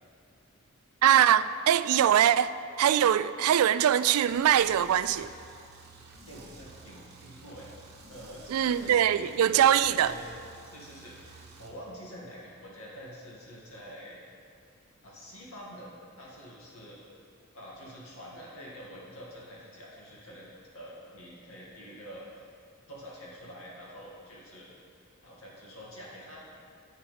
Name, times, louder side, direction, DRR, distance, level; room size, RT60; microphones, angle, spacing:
voice 1, 1.0-5.3 8.5-10.1, right 10 dB, 80° right, 0.3 m, -23 dB
sound 1, 4.3-11.7, right 3 dB, 50° right, 1.2 m, -51 dB
voice 2, 6.3-7.7 8.1-10.3 10.7-14.2 15.0-15.9 16.2-17.0 17.5-22.5 22.9-24.8 25.2-26.5, equal, 65° left, 2.3 m, -46 dB
9.8 x 9.2 x 3.5 m
head